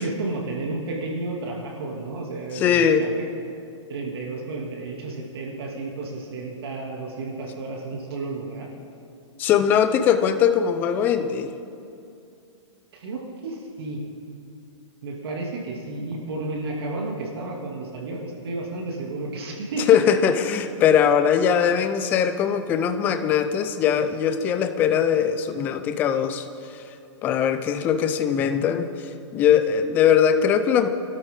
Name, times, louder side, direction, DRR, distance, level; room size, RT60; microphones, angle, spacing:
voice 1, 0.0-3.3 3.9-8.7 12.9-14.0 15.0-20.0, right 3 dB, 55° right, -1 dB, 2.5 m, -32 dB
voice 2, 2.5-3.0 9.4-11.5 19.9-26.5 27.2-28.9 29.3-30.9, left 8 dB, 10° left, 9 dB, 0.4 m, -20 dB
24.0 x 13.0 x 3.7 m, 2.6 s
hypercardioid pair, 165°, 16 cm